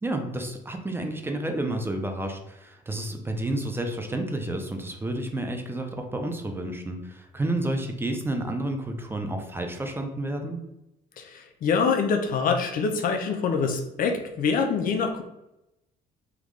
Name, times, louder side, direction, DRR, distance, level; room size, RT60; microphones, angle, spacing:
voice 1, 0.0-10.6, right 1 dB, 15° right, 3 dB, 0.5 m, -30 dB
voice 2, 11.2-15.2, left 5 dB, 55° left, 5 dB, 0.5 m, -25 dB
3.5 x 2.3 x 3.2 m, 0.88 s
cardioid pair, 110°, 17 cm